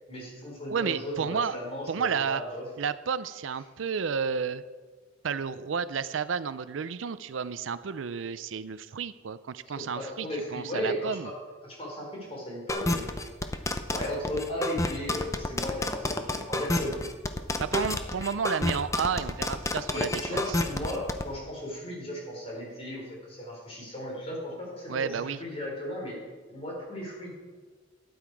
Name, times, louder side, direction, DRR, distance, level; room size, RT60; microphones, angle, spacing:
voice 1, 0.1-2.7 9.7-11.3 11.6-13.5 13.9-17.1 19.9-26.2 26.5-27.3, equal, 30° left, -3 dB, 4.0 m, -36 dB
voice 2, 0.7-1.6 1.9-2.4 2.8-4.6 5.2-11.3 17.6-20.6 24.9-25.4, right 6 dB, 85° right, 15 dB, 0.5 m, -31 dB
sound 1, 12.7-21.2, left 2 dB, 15° left, 0.6 m, -29 dB
12.5 x 9.6 x 4.7 m, 1.5 s
head